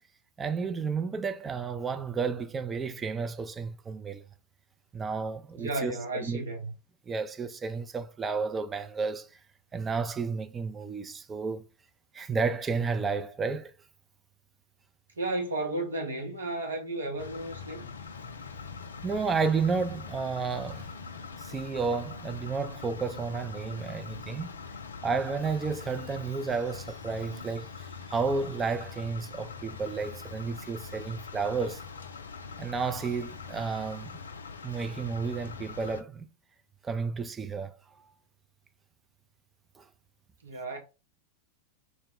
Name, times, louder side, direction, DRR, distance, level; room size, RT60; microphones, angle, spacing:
voice 1, 0.4-4.2 4.9-6.4 7.1-9.3 9.7-11.6 12.1-13.7 19.0-20.9 21.4-24.5 25.0-31.8 32.6-34.2 34.6-36.3 36.8-38.0 39.8-39.9, right 5 dB, 20° right, 0.3 m, -32 dB
voice 2, 5.6-6.7 15.2-17.9 40.4-40.8, right 2 dB, 70° right, 0.7 m, -33 dB
sound 1, 17.2-36.0, left 5 dB, 70° left, 0.3 m, -43 dB
2.1 x 2.0 x 3.7 m
figure-of-eight pair, 90°, 0 cm